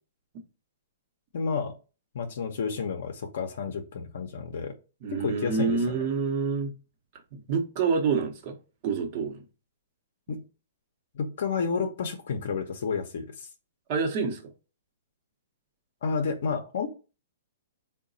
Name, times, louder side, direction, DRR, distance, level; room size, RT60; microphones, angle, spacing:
voice 1, 1.3-1.7 2.1-4.7 5.1-6.1 10.3-10.4 11.1-13.5 16.0-16.9, left 5 dB, 70° left, 0.6 m, -30 dB
voice 2, 5.0-6.7 7.3-8.5 8.8-9.4 13.9-14.4, right 5 dB, 45° right, 0.9 m, -27 dB
3.8 x 2.2 x 3.9 m
hypercardioid pair, 140°, 0 cm